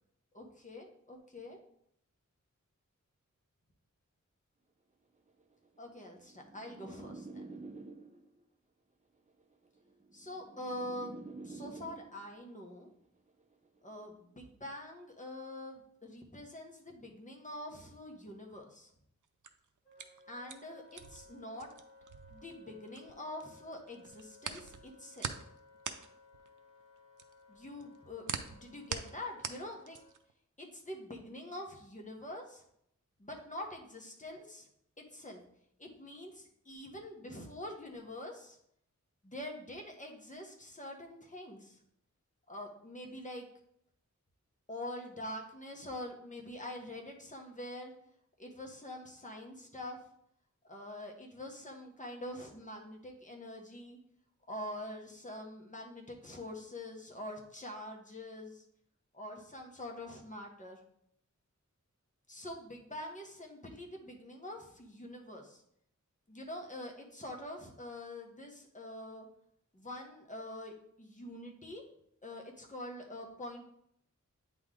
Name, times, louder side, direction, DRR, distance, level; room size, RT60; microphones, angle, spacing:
voice 1, 0.3-1.6 5.8-7.7 10.1-12.9 13.8-18.9 20.3-21.7 22.3-25.3 27.5-30.0 30.6-32.6 33.2-34.7 35.0-35.4 35.8-38.6 39.2-41.8 42.5-43.4 44.7-47.9 48.4-50.0 50.6-54.0 54.5-58.6 59.1-60.8 62.3-65.6 66.3-69.3 69.7-71.8 72.2-73.6, left 1 dB, 25° left, 0 dB, 1.2 m, -45 dB
sound 1, 5.4-8.4 9.4-12.4 13.4-13.8, right 3 dB, 25° right, 0.6 m, -49 dB
sound 2, 19.2-23.4 23.7-30.3, right 7 dB, 75° right, 0.5 m, -43 dB
Wind instrument woodwind instrument, 19.8-30.1, left 3 dB, 45° left, 2.7 m, -60 dB
8.8 x 3.1 x 3.8 m, 0.72 s
wide cardioid pair, 75°, 31 cm